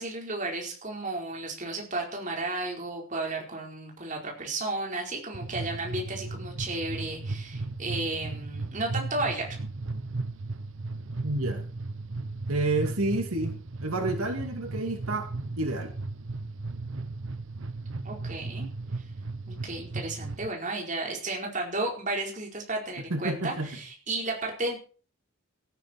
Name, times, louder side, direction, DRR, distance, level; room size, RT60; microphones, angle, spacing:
voice 1, 0.0-9.6 18.0-18.7 19.5-24.8, right 2 dB, 35° right, 0 dB, 4.4 m, -33 dB
sound 1, 5.3-20.5, right 3 dB, 60° right, 1.0 m, -36 dB
voice 2, 11.2-11.6 12.5-13.5 13.8-15.3 15.6-15.9 23.1-23.7, right 2 dB, 80° right, 4 dB, 2.7 m, -29 dB
18.0 x 13.0 x 4.5 m, 0.39 s
head